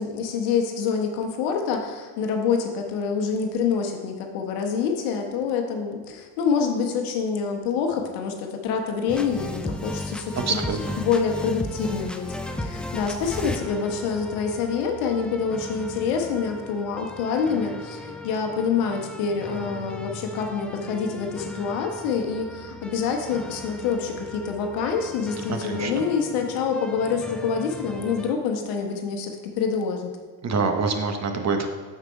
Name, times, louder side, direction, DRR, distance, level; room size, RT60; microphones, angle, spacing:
voice 1, 0.0-10.6 11.0-12.3 12.6-30.1, left 6 dB, 85° left, 3 dB, 1.1 m, -26 dB
sound 1, 9.1-28.3, left 1 dB, ahead, 0.3 m, -36 dB
voice 2, 10.5-10.8 25.5-26.0 30.4-31.7, right 4 dB, 35° right, 5 dB, 1.0 m, -25 dB
6.5 x 4.6 x 5.2 m, 1.4 s
supercardioid pair, 80°, 44 cm